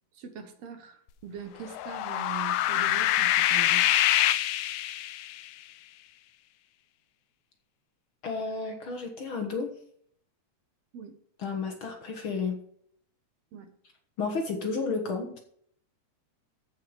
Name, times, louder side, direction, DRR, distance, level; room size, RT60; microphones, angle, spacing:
voice 1, 0.1-3.9 10.9-11.2 13.5-13.7, right 7 dB, 65° right, 6 dB, 2.2 m, -42 dB
sound 1, 1.6-5.4, left 13 dB, 85° left, 1.9 m, -25 dB
voice 2, 8.2-9.7 11.4-12.6 14.2-15.4, left 4 dB, 55° left, 4 dB, 1.8 m, -32 dB
14.5 x 5.7 x 5.0 m, 0.62 s
omnidirectional pair, 3.3 m